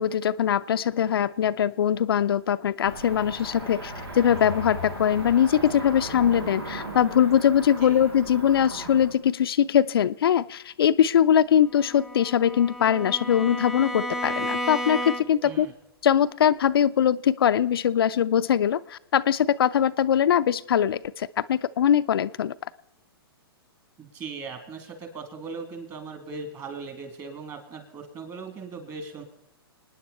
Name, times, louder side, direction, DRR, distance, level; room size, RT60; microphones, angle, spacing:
voice 1, 0.0-15.7 16.0-22.5, left 9 dB, 70° left, 11 dB, 0.5 m, -22 dB
Cricket / Motor vehicle (road), 2.8-9.1, right 1 dB, 85° right, 3.8 m, -37 dB
Bowed string instrument, 11.7-15.6, equal, ahead, 0.6 m, -32 dB
voice 2, 24.0-29.2, right 4 dB, 25° right, 6 dB, 2.9 m, -38 dB
28.5 x 9.7 x 4.2 m, 0.86 s
hypercardioid pair, 120°, 13 cm